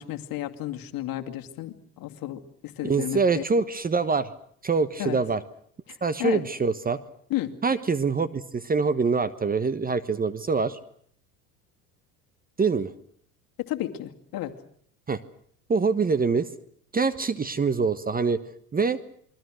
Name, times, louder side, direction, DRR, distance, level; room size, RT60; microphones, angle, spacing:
voice 1, 0.0-3.4 5.0-5.2 5.9-6.4 7.3-7.5 13.7-14.5, left 14 dB, 50° left, 5 dB, 2.5 m, -33 dB
voice 2, 2.8-4.3 4.6-5.4 6.0-7.0 7.6-10.8 12.6-12.9 15.1-15.2 15.7-16.5 16.9-18.4 18.7-19.0, right 4 dB, 20° right, 13 dB, 1.2 m, -24 dB
28.5 x 22.5 x 6.4 m, 0.62 s
hypercardioid pair, 80°, 45 cm